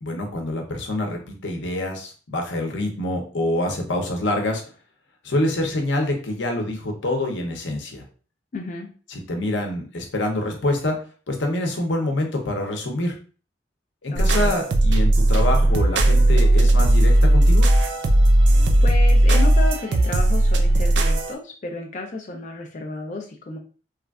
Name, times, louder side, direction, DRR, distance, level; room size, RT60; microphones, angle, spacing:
voice 1, 0.0-4.6 5.2-8.0 9.1-11.0 11.3-13.2 14.0-17.7, left 1 dB, 90° left, 3 dB, 0.7 m, -26 dB
voice 2, 8.5-8.9 14.1-14.5 18.4-23.6, left 2 dB, 45° left, 1 dB, 0.4 m, -32 dB
sound 1, 14.2-21.3, right 1 dB, 70° right, 0.4 m, -16 dB
3.2 x 2.4 x 2.3 m, 0.38 s
head